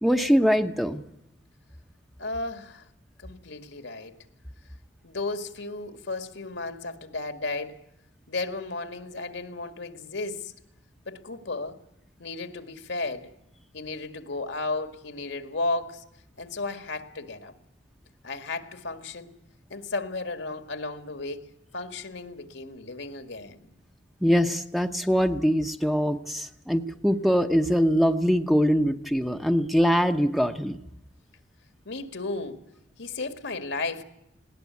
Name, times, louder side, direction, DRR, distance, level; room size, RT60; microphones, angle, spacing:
voice 1, 0.0-1.0 24.2-30.8, equal, ahead, 0.8 m, -23 dB
voice 2, 2.2-2.8 3.2-4.2 5.0-7.8 8.3-10.5 11.1-11.8 12.2-13.3 13.7-16.0 16.4-17.5 18.2-19.3 19.7-23.7 31.9-32.6 33.0-34.0, left 3 dB, 80° left, 1.9 m, -34 dB
19.5 x 18.0 x 9.4 m
head